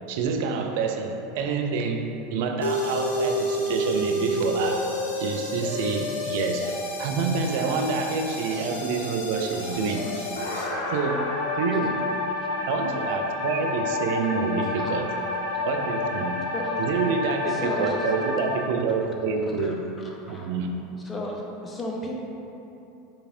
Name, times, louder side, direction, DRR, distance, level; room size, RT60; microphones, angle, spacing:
voice 1, 0.1-6.7 7.0-10.1 10.9-12.1 12.7-15.1 15.7-16.4 16.8-19.9 20.3-20.7, right 4 dB, 60° right, 4 dB, 0.3 m, -27 dB
sound 1, 2.6-18.6, left 2 dB, 75° left, 0.6 m, -29 dB
voice 2, 14.8-15.3 15.5-15.6 16.5-17.0 17.4-18.1 19.6-20.5 21.0-22.1, left 1 dB, 20° left, -2 dB, 0.7 m, -36 dB
4.9 x 3.1 x 2.5 m, 2.9 s
figure-of-eight pair, 80°, 0 cm